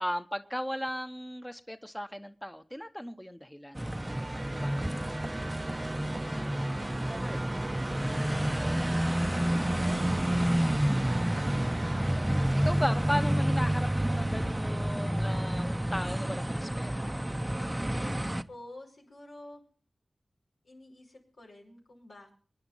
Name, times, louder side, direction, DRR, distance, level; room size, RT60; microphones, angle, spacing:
voice 1, 0.0-3.9 4.5-4.8 9.6-10.1 12.0-17.1, equal, 10° left, 9 dB, 0.9 m, -36 dB
sound 1, 3.8-18.4, right 1 dB, 15° right, 0.7 m, -29 dB
sound 2, 3.9-16.2, right 2 dB, 45° right, 1.0 m, -43 dB
voice 2, 6.2-11.5 18.2-19.6 20.6-22.4, left 1 dB, 90° left, -1 dB, 5.5 m, -52 dB
24.0 x 10.0 x 5.5 m, 0.43 s
cardioid pair, 45°, 0 cm